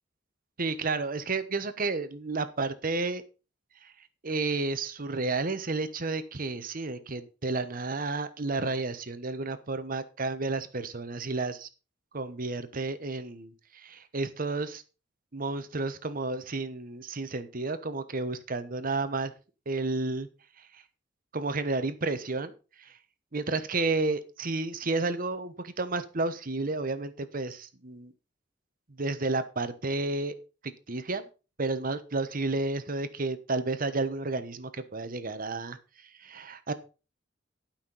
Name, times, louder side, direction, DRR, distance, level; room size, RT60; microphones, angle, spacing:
voice 1, 0.6-3.2 3.8-11.7 12.1-14.8 15.3-19.3 19.7-20.3 20.6-20.8 21.3-22.5 22.8-23.0 23.3-28.1 28.9-30.3 30.6-31.3 31.6-36.7, right 3 dB, 50° right, 12 dB, 1.1 m, -31 dB
11.5 x 5.9 x 5.5 m, 0.33 s
head